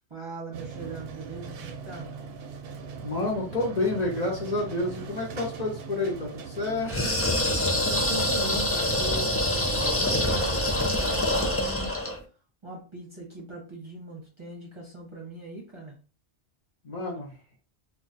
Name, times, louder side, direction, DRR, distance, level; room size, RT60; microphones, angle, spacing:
voice 1, 0.1-2.1 7.9-12.0 12.6-16.0, right 2 dB, 30° right, -2 dB, 0.7 m, -40 dB
sound 1, 0.5-10.9, right 5 dB, 65° right, 0.7 m, -40 dB
voice 2, 3.0-7.1 16.8-17.3, left 2 dB, 40° left, -2 dB, 0.8 m, -29 dB
sound 2, 6.8-12.2, left 1 dB, 20° left, 0.4 m, -25 dB
2.3 x 2.3 x 4.0 m, 0.35 s
omnidirectional pair, 1.1 m